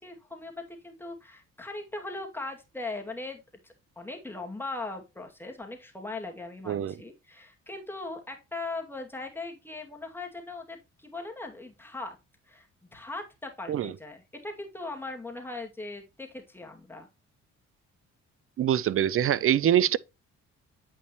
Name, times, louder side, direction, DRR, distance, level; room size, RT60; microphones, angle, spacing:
voice 1, 0.0-12.2 12.5-12.7 12.9-17.1, left 2 dB, 5° left, 2.3 m, -39 dB
voice 2, 6.7-7.0 13.7-13.9 18.6-20.0, right 10 dB, 45° right, 0.5 m, -24 dB
8.6 x 5.3 x 3.0 m
cardioid pair, 90°, 30 cm